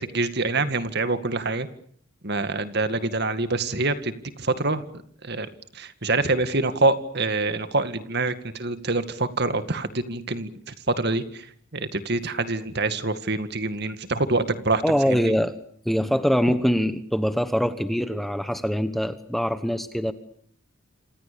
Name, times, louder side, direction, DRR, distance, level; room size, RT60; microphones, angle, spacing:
voice 1, 0.0-1.7 2.2-4.8 5.2-5.5 5.7-11.5 11.7-15.3, right 3 dB, 50° right, 11 dB, 2.1 m, -26 dB
voice 2, 14.8-15.5 15.8-20.1, equal, ahead, 10 dB, 1.2 m, -23 dB
28.0 x 26.5 x 7.0 m, 0.62 s
head